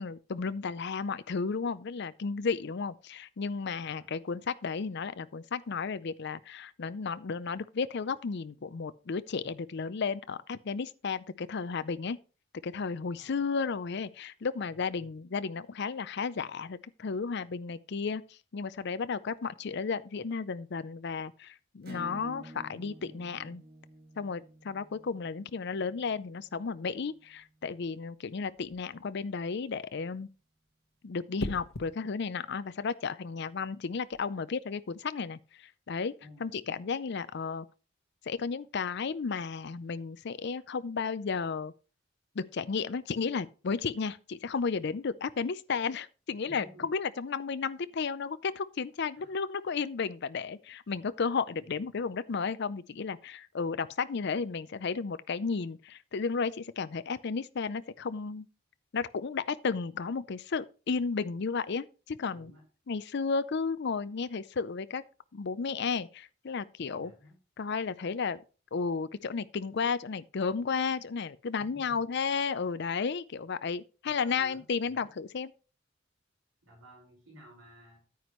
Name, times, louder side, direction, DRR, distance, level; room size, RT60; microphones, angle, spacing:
voice 1, 0.0-12.2 12.6-18.2 18.5-23.6 24.2-30.3 31.0-36.1 36.4-37.7 38.3-41.7 42.4-58.5 58.9-62.5 62.9-65.0 65.3-67.1 67.6-68.4 68.7-75.5, left 5 dB, 55° left, 0.5 m, -33 dB
voice 2, 3.8-4.2 13.1-13.4 14.7-15.1 36.2-36.6 46.4-46.9 49.1-49.4 51.5-52.1 62.3-62.6 66.9-67.4 71.6-72.1 74.0-75.1 76.6-78.0, equal, 90° right, 5.3 m, -55 dB
Acoustic guitar / Strum, 21.8-27.1, equal, 50° right, 2.0 m, -50 dB
sound 1, 28.6-28.9 31.4-31.9 33.9-34.2, left 2 dB, 75° left, 1.1 m, -38 dB
9.6 x 9.4 x 3.1 m
head